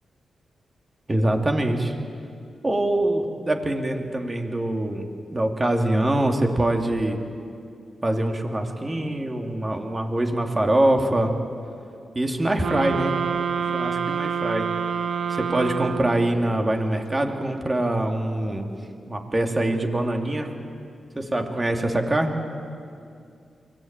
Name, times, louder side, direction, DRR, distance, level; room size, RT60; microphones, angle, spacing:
voice 1, 1.1-1.9 2.6-7.2 8.0-11.3 12.1-13.1 13.6-14.6 15.3-18.7 19.1-20.5 21.1-22.4, right 1 dB, 30° right, 3 dB, 2.8 m, -24 dB
sound 1, 12.6-16.5, right 6 dB, 75° right, 1.0 m, -27 dB
23.5 x 15.5 x 9.0 m, 2.5 s
cardioid pair, 50°, 0 cm